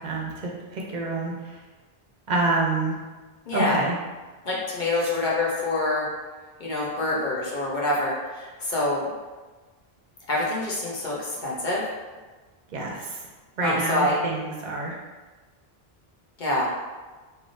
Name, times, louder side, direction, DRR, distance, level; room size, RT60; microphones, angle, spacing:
voice 1, 0.0-1.6 2.3-2.9 3.5-4.0 12.7-13.2 13.6-15.0, right 2 dB, 55° right, -2 dB, 0.6 m, -27 dB
voice 2, 3.5-3.8 4.4-6.1 6.6-9.0 10.3-11.8 13.6-14.1 16.4-16.7, left 2 dB, 55° left, -5 dB, 0.7 m, -26 dB
3.2 x 2.5 x 2.5 m, 1.3 s
omnidirectional pair, 1.1 m